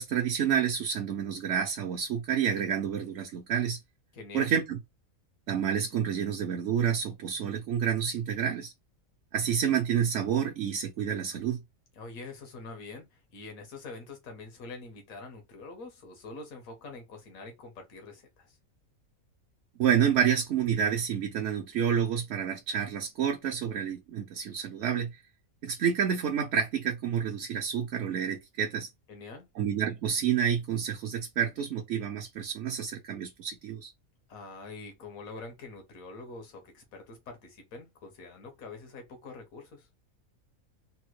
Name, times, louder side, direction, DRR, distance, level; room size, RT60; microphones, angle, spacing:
voice 1, 0.0-3.8 4.3-4.8 5.5-8.7 9.3-11.6 19.8-25.2 25.6-28.9 29.6-33.9, right 8 dB, 65° right, 0.9 m, -29 dB
voice 2, 4.1-4.5 11.9-18.6 29.1-29.5 34.3-39.9, left 3 dB, 85° left, 1.4 m, -45 dB
3.4 x 2.1 x 3.1 m
omnidirectional pair, 1.4 m